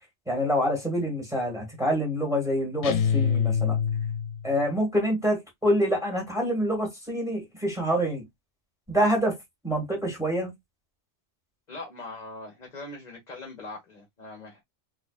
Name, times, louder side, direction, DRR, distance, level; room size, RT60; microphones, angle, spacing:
voice 1, 0.3-3.8 4.4-8.2 8.9-9.4 9.6-10.5, equal, 5° right, 1.9 m, -26 dB
sound 1, 2.8-4.5, left 7 dB, 80° left, 0.9 m, -25 dB
voice 2, 11.7-14.6, left 2 dB, 40° left, 1.2 m, -41 dB
3.9 x 3.1 x 2.4 m
omnidirectional pair, 1.2 m